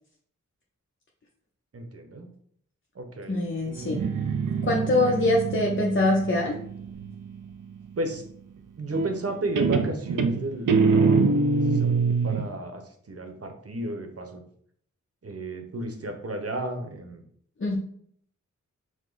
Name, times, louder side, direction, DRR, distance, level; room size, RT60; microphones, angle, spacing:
voice 1, 1.7-2.3 2.9-5.3 8.0-8.2 8.8-14.4 15.2-17.2, right 1 dB, 50° right, 5 dB, 0.9 m, -34 dB
voice 2, 3.3-4.0 4.6-6.6 17.6-17.8, left 2 dB, 40° left, -1 dB, 0.6 m, -24 dB
Guitar, 3.8-7.4 8.9-9.3 9.6-12.5, right 4 dB, 85° right, 0.5 m, -24 dB
4.9 x 2.1 x 3.9 m, 0.63 s
wide cardioid pair, 60°, 31 cm